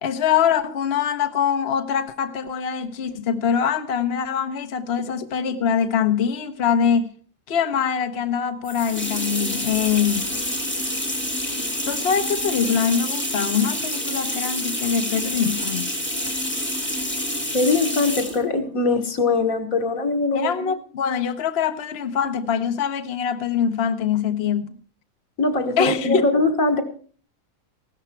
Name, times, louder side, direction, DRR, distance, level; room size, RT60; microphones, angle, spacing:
voice 1, 0.0-7.1 7.5-10.3 11.9-15.9 20.3-24.7 25.8-26.3, left 7 dB, 55° left, 1.1 m, -23 dB
sound 1, 8.6-18.4, left 1 dB, 10° left, 2.7 m, -27 dB
voice 2, 17.5-20.7 25.4-26.8, left 3 dB, 85° left, 2.2 m, -22 dB
16.0 x 12.5 x 4.5 m
omnidirectional pair, 1.4 m